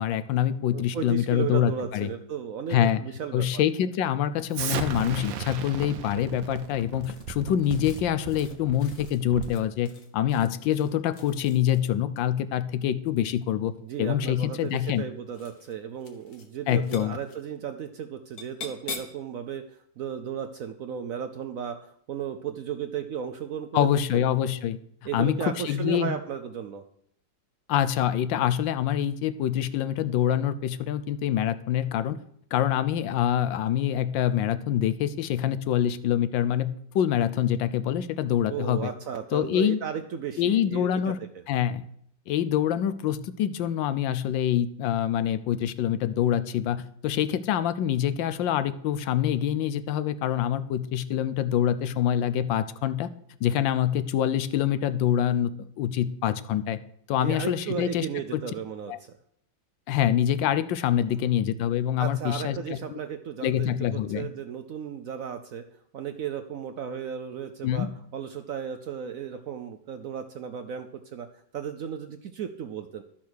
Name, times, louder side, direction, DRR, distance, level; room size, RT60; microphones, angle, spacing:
voice 1, 0.0-2.1 2.7-3.0 3.3-13.7 14.0-15.0 16.7-17.2 23.7-24.8 25.1-26.2 27.7-32.2 32.5-38.9 39.3-39.8 40.4-41.2 41.5-41.9 42.3-53.1 53.4-56.8 57.1-58.1 58.3-58.4 58.9-59.0 59.9-63.0 63.4-64.3 67.6-67.9, left 10 dB, 85° left, 13 dB, 1.4 m, -25 dB
voice 2, 0.7-3.6 13.8-24.3 25.0-26.8 38.5-41.1 57.1-59.2 62.0-65.6 65.9-67.9 68.1-71.3 71.5-73.0, right 8 dB, 65° right, 8 dB, 0.8 m, -35 dB
Explosion, 4.5-9.7, right 8 dB, 85° right, 1.5 m, -36 dB
sound 1, 7.0-12.0 13.3-13.9 14.6-15.0 15.3-15.7 16.0-16.5 16.7-17.4 18.4-19.3, left 4 dB, 55° left, 1.8 m, -44 dB
12.0 x 5.9 x 6.3 m, 0.70 s
omnidirectional pair, 2.0 m